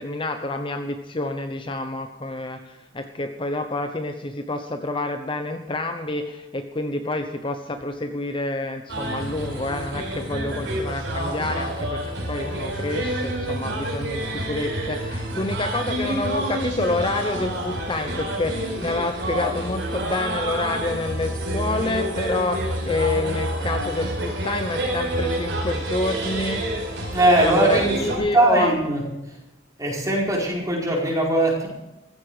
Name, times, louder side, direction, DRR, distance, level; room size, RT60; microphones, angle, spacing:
voice 1, 0.0-26.6 27.4-28.8, left 2 dB, 25° left, 6 dB, 0.9 m, -28 dB
sound 1, 8.9-28.2, right 1 dB, 75° right, 4.4 m, -28 dB
voice 2, 27.1-29.0 29.8-31.7, right 1 dB, 20° right, -3 dB, 4.8 m, -20 dB
15.0 x 14.5 x 4.9 m, 0.93 s
head